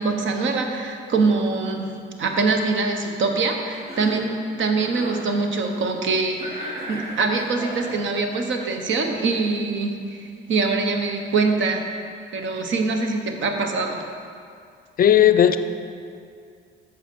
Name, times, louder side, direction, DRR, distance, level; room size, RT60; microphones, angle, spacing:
voice 1, 0.0-1.9 2.2-11.9 12.3-14.0, right 3 dB, 70° right, 4 dB, 1.0 m, -24 dB
Cough, 3.7-4.3 4.7-5.3 6.4-8.0, equal, 35° right, 2.1 m, -35 dB
voice 2, 15.0-15.6, left 10 dB, 45° left, 11 dB, 0.4 m, -15 dB
8.3 x 6.4 x 5.2 m, 2.4 s
cardioid pair, 90°, 20 cm